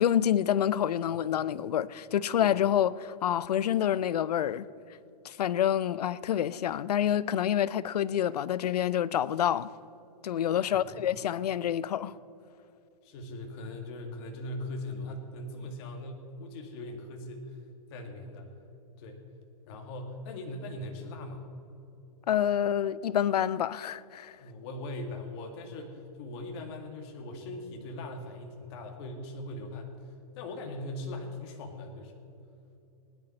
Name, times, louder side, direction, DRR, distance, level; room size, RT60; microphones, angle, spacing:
voice 1, 0.0-4.7 5.2-9.7 10.2-12.2 22.3-24.4, left 10 dB, 90° left, 0.5 m, -27 dB
voice 2, 13.0-17.4 17.9-18.5 19.0-19.2 19.7-21.4 24.4-30.0 30.4-32.2, left 1 dB, 45° left, 2.0 m, -40 dB
19.0 x 10.5 x 4.3 m
hypercardioid pair, 150°, 20 cm